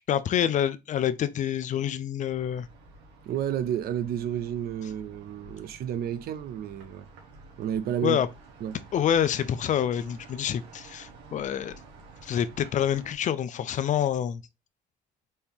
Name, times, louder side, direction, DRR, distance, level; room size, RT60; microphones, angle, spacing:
voice 1, 0.0-2.7 8.0-8.3 8.9-11.8 12.2-14.4, left 9 dB, 45° left, 0.5 m, -27 dB
sound 1, 2.2-13.2, right 3 dB, 85° right, 1.4 m, -51 dB
voice 2, 3.3-7.1 7.6-8.2 8.6-8.8, right 10 dB, 65° right, 0.6 m, -31 dB
4.2 x 2.9 x 3.5 m
cardioid pair, 110°, 17 cm